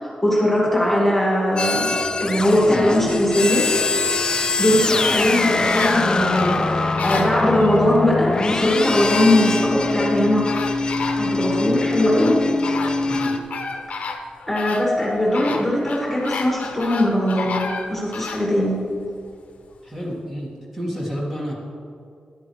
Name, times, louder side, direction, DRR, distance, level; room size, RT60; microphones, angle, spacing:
voice 1, 0.0-3.7 4.6-10.4 11.2-12.4 14.0-14.1 14.5-18.8, left 1 dB, 5° left, -4 dB, 2.2 m, -20 dB
sound 1, 1.6-13.4, left 3 dB, 30° left, 0.6 m, -23 dB
sound 2, 5.5-7.9 8.6-8.7 9.0-10.1 10.5-11.7 12.2-18.5 18.9-19.0, left 4 dB, 70° left, 0.9 m, -31 dB
voice 2, 13.0-13.3 19.8-21.5, equal, 15° right, -5 dB, 2.3 m, -30 dB
13.0 x 11.5 x 3.4 m, 2.3 s
wide cardioid pair, 130°, 3 cm